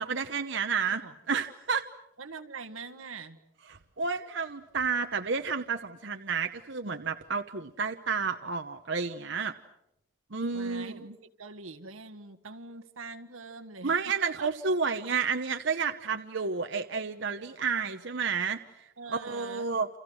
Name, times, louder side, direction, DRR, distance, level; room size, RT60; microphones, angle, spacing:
voice 1, 0.0-1.9 3.7-9.5 10.3-11.1 13.8-19.9, right 5 dB, 60° right, 6 dB, 1.0 m, -31 dB
voice 2, 2.2-3.4 10.5-11.1 11.4-13.9 14.2-14.5 19.0-19.8, right 4 dB, 85° right, 5 dB, 1.7 m, -43 dB
29.0 x 28.0 x 6.4 m, 0.83 s
head